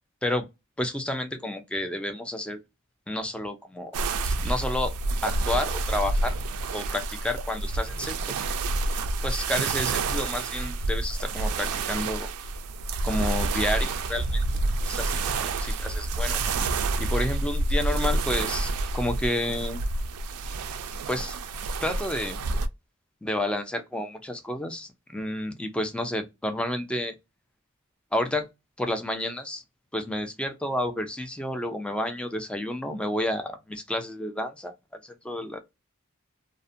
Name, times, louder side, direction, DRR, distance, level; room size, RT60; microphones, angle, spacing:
voice 1, 0.8-2.6 3.1-3.9 4.2-4.9 5.2-6.4 6.7-8.1 9.2-12.3 13.0-14.4 14.8-15.5 15.8-16.4 17.0-19.8 21.1-21.3 21.8-22.4 23.2-27.1 28.1-28.5 28.8-29.6 29.9-34.7 35.0-35.6, left 1 dB, 5° left, 0.4 m, -30 dB
sound 1, 3.9-22.7, right 2 dB, 80° right, 0.3 m, -28 dB
2.4 x 2.1 x 2.5 m
head